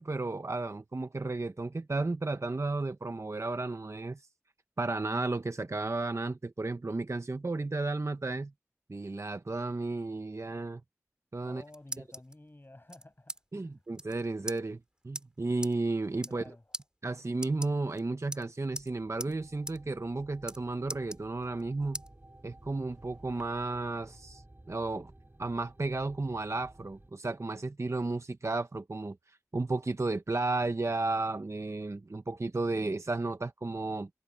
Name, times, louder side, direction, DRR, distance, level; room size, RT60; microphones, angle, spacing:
voice 1, 0.0-4.2 4.8-8.5 8.9-10.8 11.3-11.6 13.5-14.8 15.0-16.4 17.0-22.0 22.4-25.1 25.4-29.2 29.5-34.1, right 3 dB, 65° right, 0.7 m, -33 dB
sound 1, 11.3-12.3 12.9-13.4 13.7-13.8 13.9-14.1 14.5-14.6 15.1-15.2 15.6-15.7 16.1-16.5 16.7-16.8 17.3-18.0 18.3-18.9 19.2-19.3 19.7-19.8 20.1-20.6 20.9-21.6 21.9-22.1 22.6-23.4, right 1 dB, 15° right, 3.9 m, -41 dB
voice 2, 11.4-13.8 16.2-16.8, left 1 dB, 45° left, 6.5 m, -53 dB
sound 2, 18.7-27.1, right 1 dB, 45° right, 4.4 m, -55 dB
wide cardioid pair, 50°, 5 cm